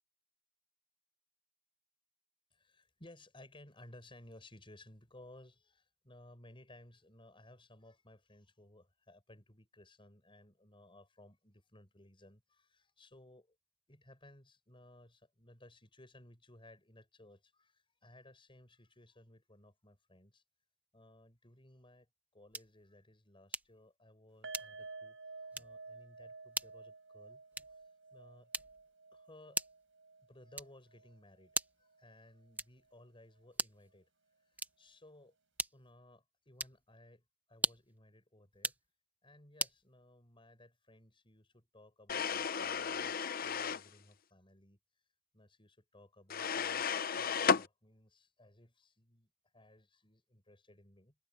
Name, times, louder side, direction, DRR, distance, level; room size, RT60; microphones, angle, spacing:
voice 1, 2.5-13.6 13.9-20.4 20.9-27.4 27.7-27.8 28.1-28.5 29.1-29.6 30.2-34.1 34.5-35.3 35.7-37.2 37.5-38.7 39.2-44.8 45.3-46.9 47.1-51.1, left 1 dB, 25° left, 6.2 m, -60 dB
sound 1, 22.5-22.8 23.5-23.8 24.5-25.0 25.5-25.8 26.5-26.8 27.5-27.9 28.5-28.9 29.5-29.9 30.5-30.9 31.5-31.9 32.5-32.9 33.5-33.9 34.5-34.9 35.6-36.0 36.5-36.8 37.5-38.0 38.5-38.9 39.6-39.8, right 2 dB, 10° right, 1.0 m, -39 dB
sound 2, 24.4-31.6 31.9-32.1 32.5-32.6, right 3 dB, 70° right, 6.7 m, -52 dB
sound 3, 42.1-43.9 46.3-47.7, left 6 dB, 50° left, 0.7 m, -33 dB
head